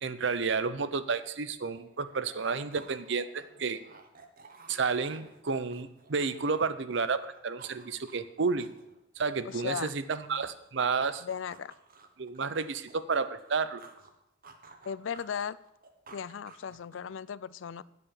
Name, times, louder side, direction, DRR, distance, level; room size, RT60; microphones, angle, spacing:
voice 1, 0.0-3.8 4.7-8.7 9.2-11.2 12.2-13.8, right 4 dB, 65° right, 13 dB, 0.7 m, -31 dB
sound 1, 1.4-6.9 7.2-10.7 11.1-14.1 14.4-17.2, right 4 dB, 45° right, 1.2 m, -55 dB
voice 2, 9.4-9.9 11.2-11.7 14.8-15.6 16.1-17.8, left 7 dB, 75° left, 19 dB, 0.4 m, -36 dB
9.1 x 8.3 x 7.1 m, 0.86 s
head